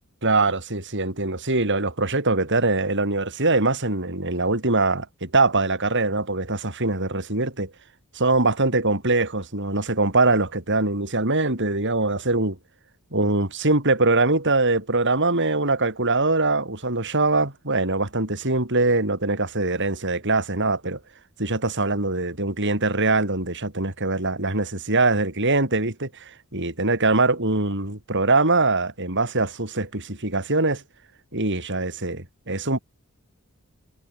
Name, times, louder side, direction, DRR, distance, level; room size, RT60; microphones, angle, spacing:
voice 1, 0.2-7.7 8.1-12.6 13.1-21.0 21.4-30.8 31.3-32.8, right 2 dB, 55° right, 6.1 m, -23 dB
head